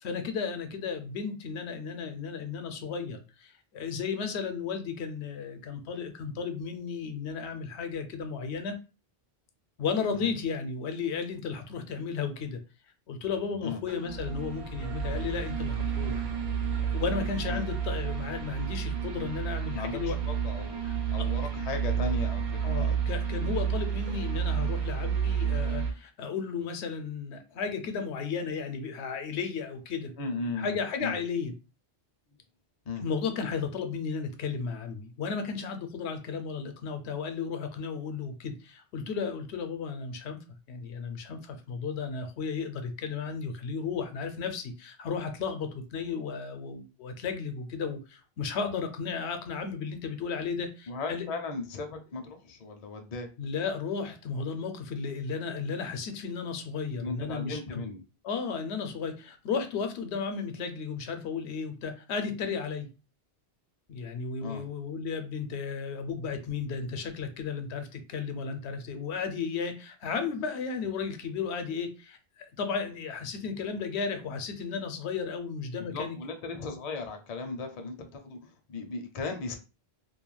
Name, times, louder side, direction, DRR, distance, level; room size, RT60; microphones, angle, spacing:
voice 1, 0.0-8.8 9.8-12.6 13.1-16.2 16.9-20.2 20.8-21.3 22.6-30.1 30.6-31.5 33.0-40.4 40.7-51.2 53.4-57.8 58.2-62.9 63.9-76.2, left 5 dB, 85° left, 0.8 m, -34 dB
sound 1, 13.9-25.9, right 7 dB, 70° right, 0.8 m, -30 dB
voice 2, 19.7-20.8 21.1-23.0 30.2-31.2 32.9-33.0 50.9-53.3 57.0-58.0 64.4-64.7 75.8-79.6, left 3 dB, 50° left, 0.5 m, -37 dB
2.4 x 2.2 x 3.1 m
omnidirectional pair, 1.1 m